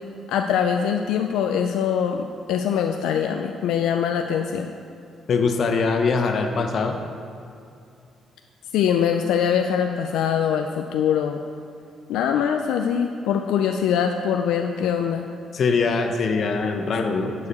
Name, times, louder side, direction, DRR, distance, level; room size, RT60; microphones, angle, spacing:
voice 1, 0.3-2.2 2.5-4.7 8.7-11.4 12.1-15.3, left 8 dB, 90° left, 5 dB, 0.3 m, -23 dB
voice 2, 5.3-7.0 15.5-17.5, left 4 dB, 60° left, 5 dB, 0.8 m, -22 dB
9.6 x 4.8 x 5.3 m, 2.5 s
cardioid pair, 90°, 0 cm